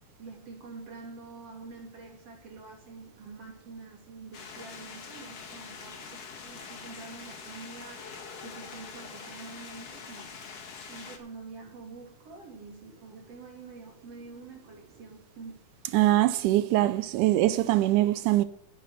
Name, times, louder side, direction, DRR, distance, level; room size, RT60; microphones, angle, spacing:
voice 1, 0.2-8.1 8.4-10.4 10.9-15.6, right 4 dB, 50° right, 3.7 m, -46 dB
sound 1, 4.3-11.2, left 5 dB, 55° left, 2.6 m, -44 dB
voice 2, 15.9-18.4, right 15 dB, 85° right, 2.1 m, -23 dB
9.9 x 8.4 x 7.4 m
omnidirectional pair, 3.5 m